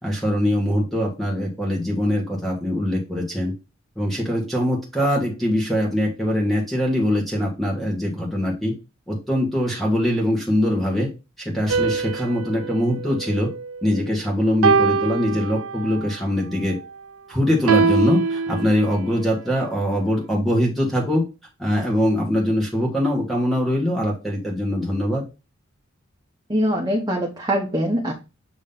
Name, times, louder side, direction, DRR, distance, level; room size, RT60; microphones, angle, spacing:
voice 1, 0.0-3.5 4.0-8.7 9.1-11.1 11.4-13.5 13.8-16.8 17.3-21.3 21.6-25.2, equal, ahead, -2 dB, 1.5 m, -22 dB
sound 1, 11.7-14.1 14.6-16.1 17.7-19.2, right 4 dB, 85° right, 0.6 m, -23 dB
voice 2, 26.5-28.1, equal, 20° right, 0 dB, 1.0 m, -23 dB
7.2 x 3.1 x 5.3 m, 0.29 s
head